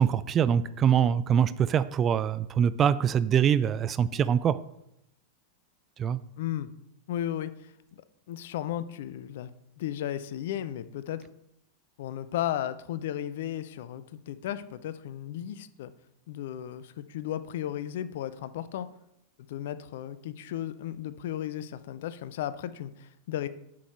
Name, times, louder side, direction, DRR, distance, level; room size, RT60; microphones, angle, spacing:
voice 1, 0.0-4.6 6.0-6.2, right 8 dB, 25° right, 0.3 m, -24 dB
voice 2, 6.4-6.7 7.1-8.0 8.3-9.5 9.8-11.2 12.0-15.9 16.3-18.9 19.5-23.5, left 11 dB, 55° left, 0.5 m, -35 dB
7.3 x 6.3 x 4.3 m
figure-of-eight pair, 90°, 0 cm